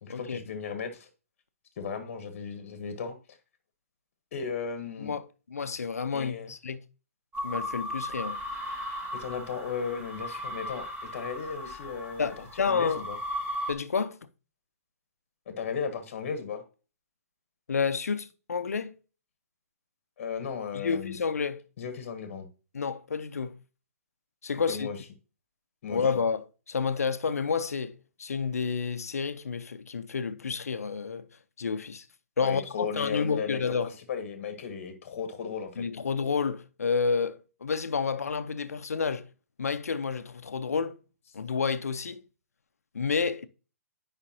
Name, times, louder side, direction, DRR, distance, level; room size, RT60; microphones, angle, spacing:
voice 1, 0.0-1.1 1.8-3.2 4.3-5.2 6.1-6.5 9.1-13.2 15.5-16.6 20.2-21.2 21.8-22.5 24.7-25.0 25.8-26.0 32.4-35.8, left 6 dB, 50° left, 1.1 m, -35 dB
voice 2, 5.5-6.9 7.4-8.4 12.2-13.0 13.7-14.2 17.7-18.9 20.7-21.6 22.7-23.6 24.4-24.9 25.9-27.9 28.2-31.3 31.6-32.1 32.4-33.9 35.8-39.3 39.6-41.0 41.3-42.2 42.9-43.5, left 5 dB, 80° left, 0.7 m, -30 dB
sound 1, 7.3-13.7, equal, 15° right, 1.8 m, -36 dB
9.9 x 5.2 x 2.7 m
hypercardioid pair, 130°, 8 cm